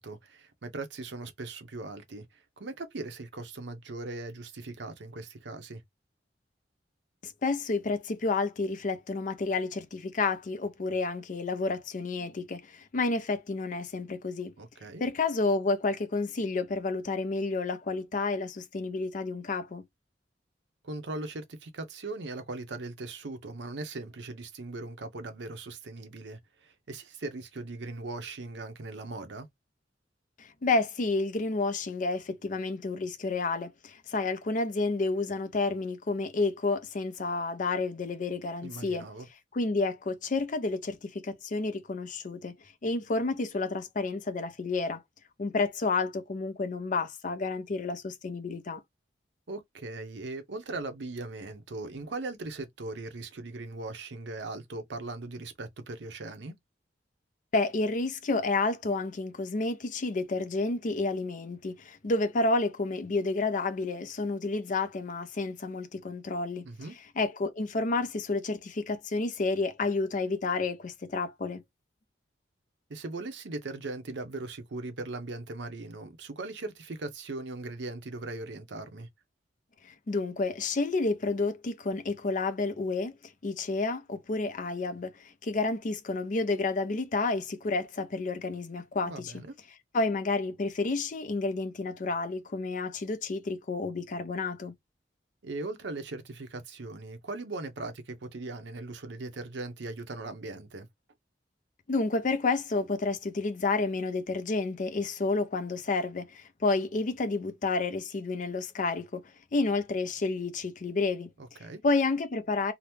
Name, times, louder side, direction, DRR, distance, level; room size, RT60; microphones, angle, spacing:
voice 1, 0.0-5.8 14.6-15.0 20.8-29.5 38.6-39.3 49.5-56.6 66.6-66.9 72.9-79.1 89.0-89.5 95.4-100.9 111.4-111.8, right 2 dB, 70° right, 0.7 m, -39 dB
voice 2, 7.2-14.5 15.0-19.8 30.4-39.1 39.5-42.5 42.8-45.0 45.4-48.8 57.5-66.7 67.2-71.6 79.8-83.1 83.4-89.3 89.9-94.7 101.9-109.2 109.5-111.3 111.8-112.7, left 3 dB, 45° left, 0.5 m, -30 dB
2.8 x 2.0 x 3.3 m
head